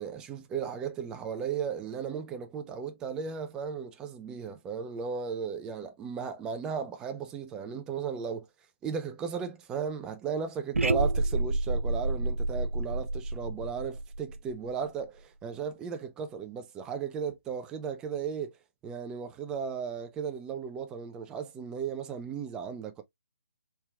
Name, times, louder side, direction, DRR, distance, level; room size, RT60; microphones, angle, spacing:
voice 1, 0.0-8.5 8.8-18.5 18.8-23.0, right 6 dB, 10° right, 0.5 m, -35 dB
sound 1, 10.7-14.9, right 2 dB, 80° right, 0.4 m, -29 dB
4.4 x 3.4 x 2.3 m
figure-of-eight pair, 140°, 7 cm